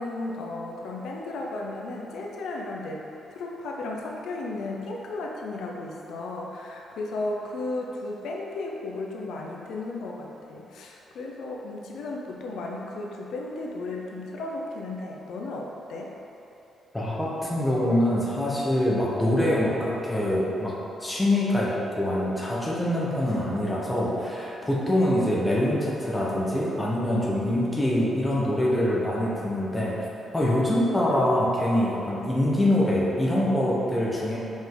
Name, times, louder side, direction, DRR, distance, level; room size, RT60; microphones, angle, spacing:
voice 1, 0.0-16.2, left 2 dB, 75° left, -1 dB, 0.6 m, -34 dB
voice 2, 16.9-20.7 21.0-29.9 30.3-34.4, left 1 dB, 10° left, -6 dB, 0.9 m, -24 dB
5.2 x 5.1 x 3.9 m, 2.9 s
cardioid pair, 165°, 0 cm